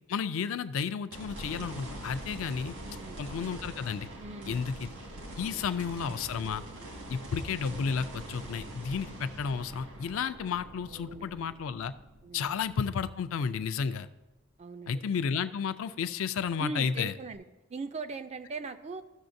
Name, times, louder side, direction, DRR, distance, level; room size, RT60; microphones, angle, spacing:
voice 1, 0.1-2.7 3.2-4.1 4.5-4.9 5.4-6.6 7.1-11.9 12.3-14.1 14.9-17.1, left 6 dB, 65° left, 12 dB, 0.4 m, -32 dB
sound 1, 1.1-13.4 13.9-14.0 17.3-17.4, right 1 dB, 80° right, 1.7 m, -44 dB
voice 2, 2.8-3.2 4.2-4.7 5.4-5.7 6.8-7.0 10.9-11.5 12.2-12.6 14.6-15.0 16.6-17.4 17.7-19.0, right 3 dB, 30° right, 10 dB, 0.3 m, -41 dB
14.5 x 6.3 x 2.6 m, 1.1 s
head